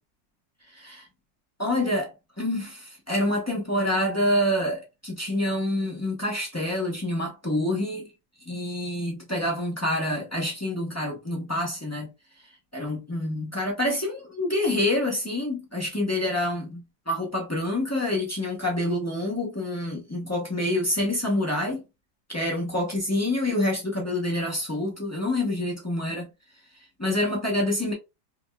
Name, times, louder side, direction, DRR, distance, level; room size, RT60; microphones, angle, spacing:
voice 1, 0.7-1.1 1.6-8.1 8.4-12.1 12.4-21.8 22.3-26.3 27.0-27.9, left 1 dB, 25° left, 0.3 m, -27 dB
4.9 x 2.4 x 2.3 m
omnidirectional pair, 2.0 m